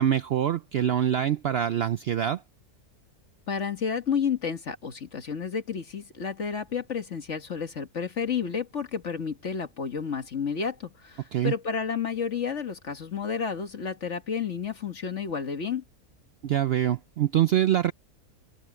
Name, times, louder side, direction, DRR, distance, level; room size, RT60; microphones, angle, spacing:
voice 1, 0.0-2.4 11.3-11.5 16.4-17.9, right 10 dB, 70° right, 0.6 m, -24 dB
voice 2, 3.5-15.8, left 6 dB, 55° left, 1.7 m, -31 dB
open air
omnidirectional pair, 1.5 m